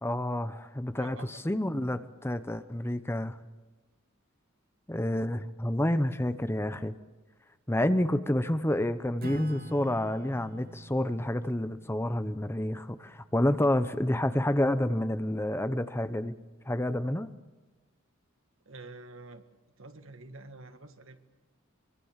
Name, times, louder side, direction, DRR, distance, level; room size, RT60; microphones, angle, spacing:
voice 1, 0.0-3.4 4.9-6.9 7.7-16.3 16.7-17.3, left 1 dB, 10° left, 11 dB, 0.9 m, -29 dB
voice 2, 1.0-1.4 18.7-19.5 19.8-21.2, right 2 dB, 65° right, 8 dB, 2.0 m, -47 dB
Acoustic guitar / Strum, 9.2-14.2, right 1 dB, 45° right, 1.0 m, -47 dB
24.0 x 24.0 x 7.4 m, 1.2 s
head